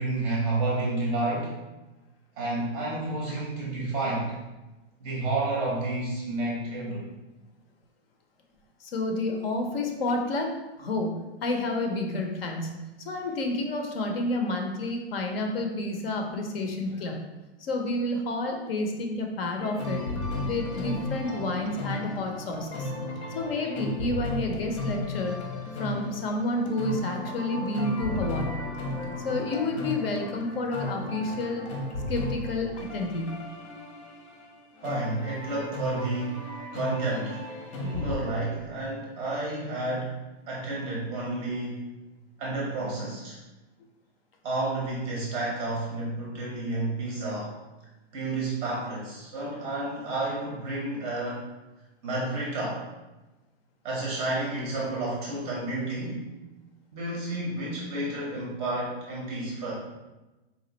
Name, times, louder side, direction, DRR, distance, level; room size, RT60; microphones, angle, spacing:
voice 1, 0.0-1.5 2.4-4.3 5.0-7.1 16.9-17.0 34.8-37.5 37.8-40.2 40.5-41.8 42.4-43.4 44.4-47.6 48.1-51.4 52.0-52.8 53.8-56.3 56.9-59.7, right 2 dB, 15° right, -4 dB, 0.6 m, -30 dB
voice 2, 8.8-17.2 17.6-20.0 20.4-22.9 23.3-25.4 25.8-28.6 29.2-31.7 32.1-33.4, left 2 dB, 60° left, 3 dB, 0.8 m, -30 dB
sound 1, 19.6-38.1, left 2 dB, 85° left, 1.2 m, -35 dB
4.2 x 2.5 x 4.0 m, 1.1 s
supercardioid pair, 170°, 33 cm